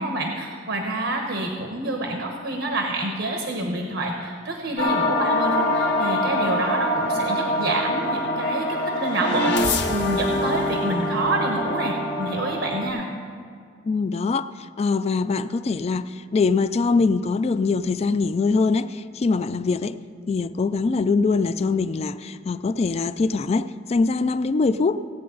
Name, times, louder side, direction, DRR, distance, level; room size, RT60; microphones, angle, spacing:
voice 1, 0.0-13.1, right 2 dB, 80° right, 2 dB, 1.1 m, -27 dB
sound 1, 4.8-12.9, left 1 dB, 65° left, 1.0 m, -24 dB
voice 2, 13.9-14.5 14.8-20.0 20.3-25.0, left 4 dB, 35° left, 14 dB, 0.3 m, -23 dB
17.0 x 8.5 x 3.9 m, 2.2 s
head